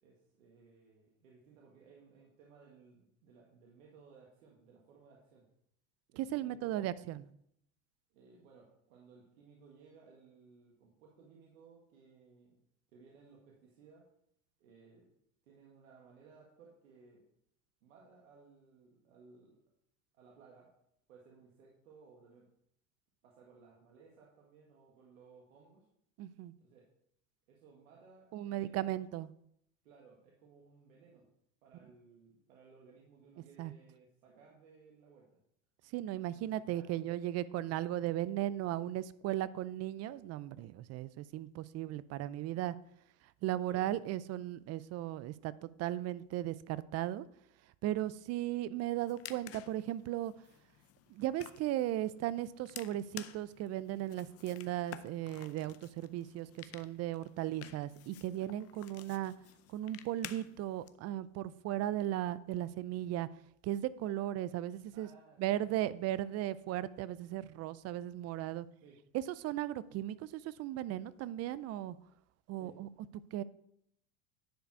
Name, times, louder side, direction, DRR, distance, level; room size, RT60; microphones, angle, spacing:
voice 1, 0.0-5.5 6.1-7.1 8.1-12.6 12.9-14.1 14.6-15.1 15.5-17.2 17.8-19.6 20.1-20.7 21.1-22.5 23.2-25.9 26.6-26.9 27.5-28.9 29.8-31.3 31.6-35.3 36.3-37.0 43.7-43.9 64.9-65.6 68.8-69.0 72.6-72.8, right 5 dB, 90° right, -2 dB, 1.7 m, -60 dB
voice 2, 6.2-7.2 26.2-26.5 28.3-29.3 33.6-33.7 35.9-42.8 43.4-47.3 47.8-50.3 51.1-59.3 59.7-63.3 63.6-65.1 65.4-68.7 69.1-72.0 72.5-72.9 73.3-73.4, right 13 dB, 40° right, 18 dB, 0.4 m, -36 dB
sound 1, 48.9-60.9, left 12 dB, 40° left, 0.6 m, -52 dB
10.0 x 4.8 x 4.7 m, 0.74 s
supercardioid pair, 105°, 39 cm